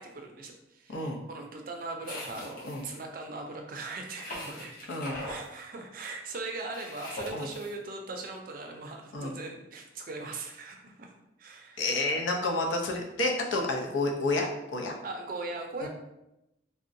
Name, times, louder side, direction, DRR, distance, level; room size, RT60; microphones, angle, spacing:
voice 1, 0.0-4.8 5.2-11.1 11.4-11.9 15.0-15.9, right 3 dB, 50° right, 2 dB, 0.4 m, -40 dB
voice 2, 0.9-1.2 2.6-2.8 4.9-5.2 7.3-7.5 9.1-9.3 11.8-14.5 14.7-14.9 15.8-15.9, left 2 dB, 90° left, 1 dB, 0.6 m, -29 dB
sound 1, 2.0-3.0 4.2-5.4 6.7-7.7, left 1 dB, 50° left, 0.8 m, -41 dB
3.6 x 2.1 x 2.5 m, 0.89 s
head